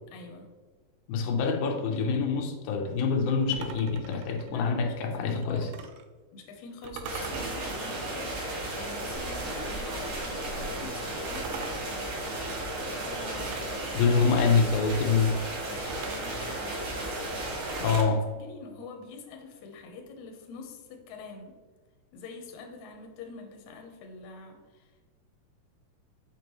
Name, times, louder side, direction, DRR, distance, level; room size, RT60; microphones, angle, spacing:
voice 1, 0.1-0.5 4.4-5.9 6.3-12.2 12.8-14.2 15.6-16.8 17.9-21.6 22.1-25.1, left 4 dB, 70° left, 3 dB, 2.1 m, -46 dB
voice 2, 1.1-5.7 14.0-15.4 17.8-18.2, left 5 dB, 90° left, 3 dB, 2.6 m, -26 dB
sound 1, 3.5-6.1 6.8-9.8 11.3-13.8 15.8-18.2, right 6 dB, 80° right, 1.9 m, -44 dB
sound 2, 7.0-18.0, right 1 dB, 55° right, 2.5 m, -34 dB
6.6 x 6.0 x 3.0 m, 1.4 s
omnidirectional pair, 4.1 m